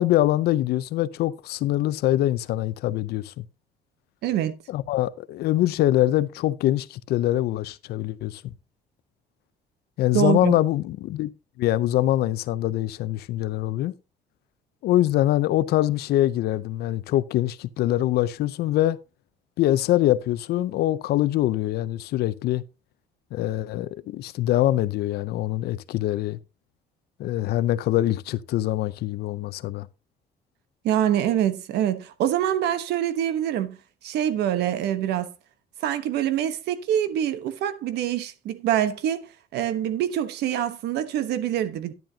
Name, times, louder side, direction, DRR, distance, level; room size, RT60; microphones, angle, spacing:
voice 1, 0.0-3.4 4.7-8.4 10.0-11.3 11.6-13.9 14.8-19.0 19.6-22.6 23.3-26.4 27.2-29.9, left 14 dB, 70° left, 0.6 m, -24 dB
voice 2, 4.2-4.5 10.1-10.5 30.8-33.8 34.0-35.3 35.8-39.2 39.5-41.9, right 10 dB, 80° right, 1.1 m, -25 dB
10.5 x 10.0 x 2.8 m
cardioid pair, 110°, 17 cm